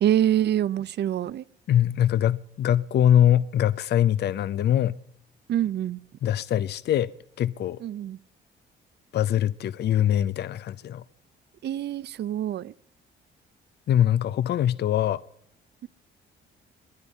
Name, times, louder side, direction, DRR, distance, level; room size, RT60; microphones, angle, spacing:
voice 1, 0.0-1.4 5.5-6.0 7.8-8.2 11.6-12.7 15.8-15.9, right 11 dB, 60° right, 0.6 m, -25 dB
voice 2, 1.7-5.0 6.2-7.1 7.4-7.8 9.1-11.0 13.9-15.2, left 10 dB, 60° left, 0.5 m, -23 dB
22.0 x 9.8 x 5.4 m
cardioid pair, 90°, 20 cm